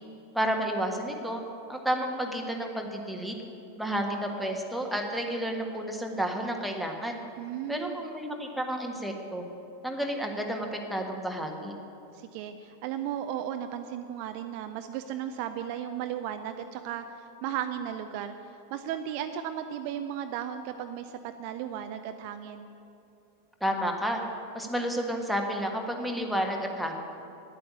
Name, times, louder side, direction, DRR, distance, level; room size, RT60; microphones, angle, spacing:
voice 1, 0.3-1.4 1.7-3.4 3.8-7.2 7.7-9.4 9.8-11.7 23.6-24.2 24.5-26.9, equal, ahead, 1 dB, 1.5 m, -31 dB
voice 2, 7.4-7.9 12.1-22.7, right 10 dB, 45° right, 8 dB, 0.5 m, -35 dB
10.5 x 8.6 x 8.4 m, 2.8 s
figure-of-eight pair, 90°, 0 cm